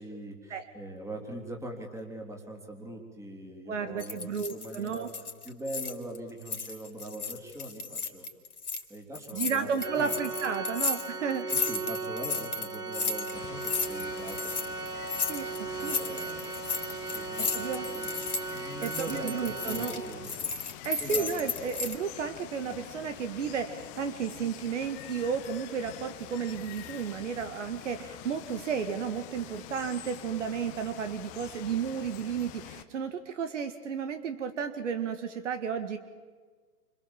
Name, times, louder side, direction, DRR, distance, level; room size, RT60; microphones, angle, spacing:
voice 1, 0.0-5.1 5.4-8.3 8.9-10.2 11.5-14.5 15.6-16.7 17.1-18.2 18.5-20.5 21.0-21.5, right 1 dB, 5° right, 2 dB, 3.4 m, -42 dB
voice 2, 3.7-5.1 9.3-11.5 15.3-16.0 17.4-17.9 18.8-20.0 20.8-36.0, right 6 dB, 50° right, 9 dB, 1.9 m, -33 dB
sound 1, 4.0-6.2 6.4-8.8 9.1-22.0, left 4 dB, 75° left, 3.4 m, -34 dB
Organ, 9.8-20.5, right 4 dB, 80° right, 2.2 m, -37 dB
Water, 13.3-32.8, left 13 dB, 15° left, 0.8 m, -46 dB
29.0 x 26.5 x 7.3 m, 1.5 s
figure-of-eight pair, 135°, 46 cm